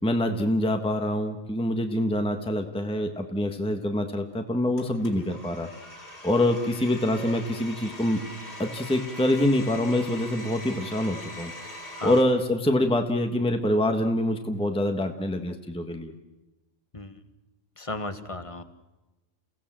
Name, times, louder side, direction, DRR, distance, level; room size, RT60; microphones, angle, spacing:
voice 1, 0.0-5.7 6.2-8.2 8.6-11.5 12.0-16.1, left 1 dB, 5° left, 5 dB, 1.4 m, -25 dB
Domestic sounds home sounds, 4.8-12.2, left 1 dB, 55° left, 4.1 m, -42 dB
voice 2, 17.8-18.6, left 2 dB, 25° left, 9 dB, 1.4 m, -35 dB
29.0 x 17.0 x 7.6 m, 1.1 s
omnidirectional pair, 1.3 m